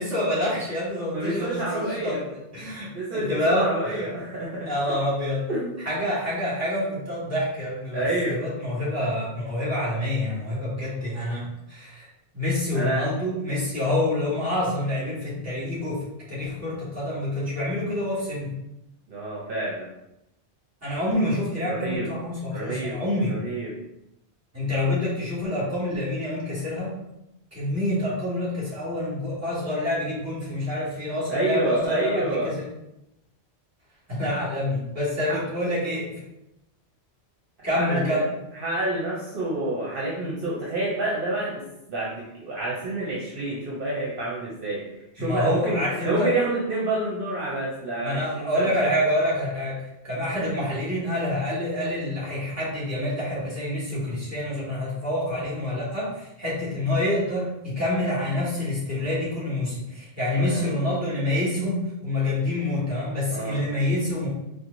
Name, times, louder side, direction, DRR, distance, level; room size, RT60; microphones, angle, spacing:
voice 1, 0.0-4.1 4.6-5.5 5.8-12.1 12.3-18.5 20.8-23.3 24.5-26.9 27.5-32.7 34.1-36.1 37.6-38.3 45.2-46.3 48.0-64.3, left 1 dB, 15° right, -8 dB, 1.5 m, -27 dB
voice 2, 1.1-2.2 2.9-4.7 5.5-5.8 7.9-8.4 9.0-9.1 12.7-13.1 19.1-19.9 21.6-22.1 22.5-23.0 23.3-23.7 31.3-32.5 35.3-35.4 37.6-38.3 38.5-44.8 45.1-48.9 60.4-60.7 63.3-63.6, right 2 dB, 60° right, -5 dB, 0.8 m, -28 dB
4.4 x 2.1 x 2.5 m, 0.87 s
omnidirectional pair, 1.1 m